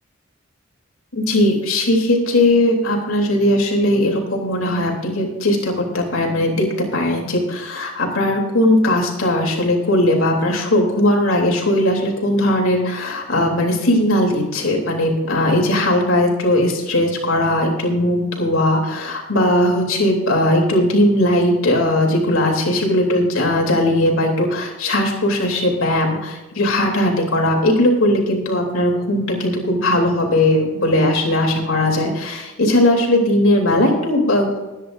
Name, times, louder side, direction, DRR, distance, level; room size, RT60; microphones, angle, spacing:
voice 1, 1.1-6.7 6.9-34.6, left 1 dB, 80° left, 0 dB, 3.3 m, -18 dB
21.0 x 10.0 x 2.6 m, 1.1 s
head